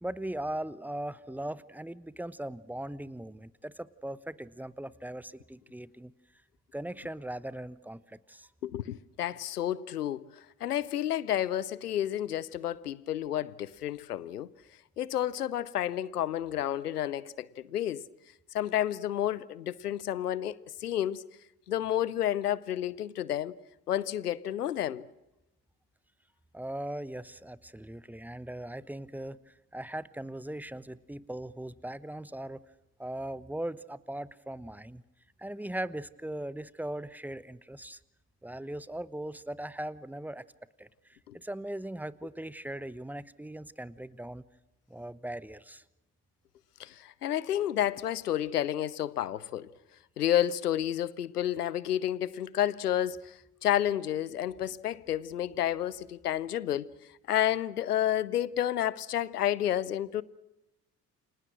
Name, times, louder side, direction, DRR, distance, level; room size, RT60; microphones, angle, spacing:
voice 1, 0.0-6.1 6.7-8.5 26.5-32.6 33.0-35.0 35.4-38.0 38.4-40.4 40.8-44.4 44.9-45.8, right 1 dB, 5° right, 1.0 m, -39 dB
voice 2, 8.6-10.2 10.6-14.5 15.0-18.0 18.5-20.6 20.8-21.2 21.7-23.5 23.9-25.0 41.3-41.4 46.8-49.7 50.2-53.2 53.6-56.9 57.3-60.2, left 11 dB, 80° left, 0.8 m, -30 dB
29.5 x 25.5 x 6.2 m
figure-of-eight pair, 55°, 45 cm